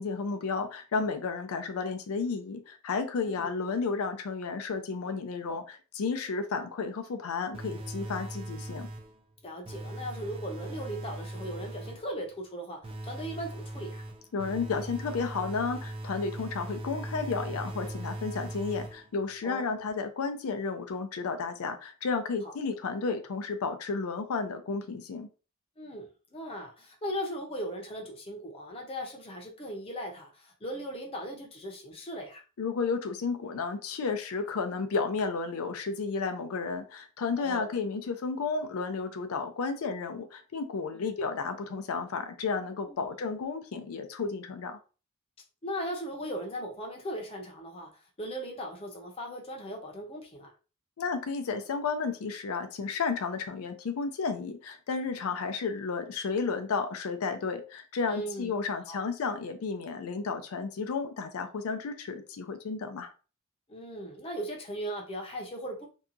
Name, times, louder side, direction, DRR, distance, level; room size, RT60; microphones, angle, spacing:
voice 1, 0.0-8.9 14.3-25.3 32.6-44.8 51.0-63.1, left 4 dB, 90° left, 7 dB, 0.4 m, -32 dB
voice 2, 3.2-3.5 9.4-14.0 19.4-19.9 22.4-22.5 25.8-32.4 37.4-37.8 40.9-41.1 42.9-43.1 45.6-50.5 55.1-55.4 58.1-58.5 58.9-59.0 63.7-65.9, equal, 25° left, 1 dB, 0.6 m, -38 dB
sound 1, 7.5-9.2 9.6-12.1 12.8-19.2, right 1 dB, 25° right, 0.4 m, -39 dB
2.7 x 2.3 x 2.5 m, 0.34 s
head